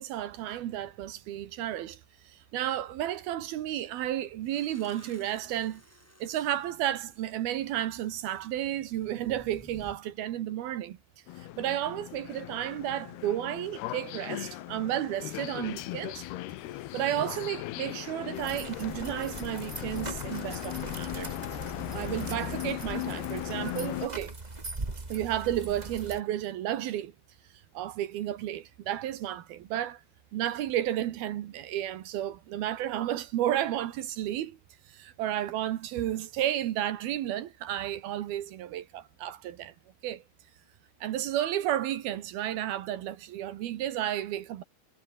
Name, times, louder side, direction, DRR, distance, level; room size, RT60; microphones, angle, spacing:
voice 1, 0.0-5.8 6.2-11.0 11.4-16.3 16.9-21.3 21.9-24.4 25.1-27.1 27.7-30.0 30.3-34.6 34.9-39.7 40.0-40.2 41.0-44.6, right 12 dB, 70° right, 3.1 m, -32 dB
sound 1, 4.5-10.0, left 1 dB, 5° left, 2.9 m, -55 dB
sound 2, 11.3-24.1, left 16 dB, 75° left, 3.0 m, -38 dB
sound 3, 18.3-26.2, right 2 dB, 20° right, 1.0 m, -41 dB
omnidirectional pair, 4.8 m